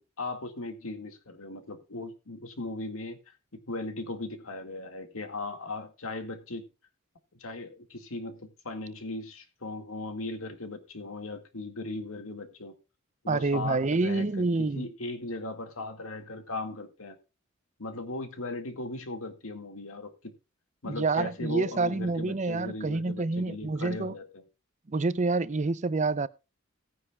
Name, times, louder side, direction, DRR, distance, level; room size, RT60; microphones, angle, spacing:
voice 1, 0.0-3.4 3.7-6.6 7.4-12.7 13.2-14.5 14.7-17.2 17.8-20.3 20.8-24.4, left 2 dB, 85° left, 2.1 m, -38 dB
voice 2, 13.3-14.9 20.9-24.1 24.9-26.3, right 3 dB, 35° right, 0.5 m, -28 dB
18.0 x 9.7 x 2.3 m
head